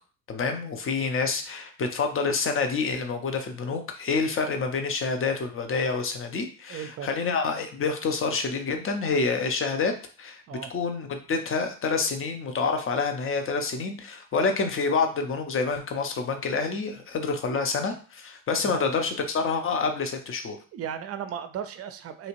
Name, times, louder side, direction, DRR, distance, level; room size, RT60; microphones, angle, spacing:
voice 1, 0.3-10.4 10.7-20.6, left 4 dB, 30° left, 6 dB, 0.7 m, -27 dB
voice 2, 6.7-7.1 10.5-10.7 18.6-18.9 20.7-22.3, right 8 dB, 35° right, 9 dB, 0.5 m, -36 dB
2.8 x 2.4 x 3.0 m, 0.39 s
hypercardioid pair, 60°, 43 cm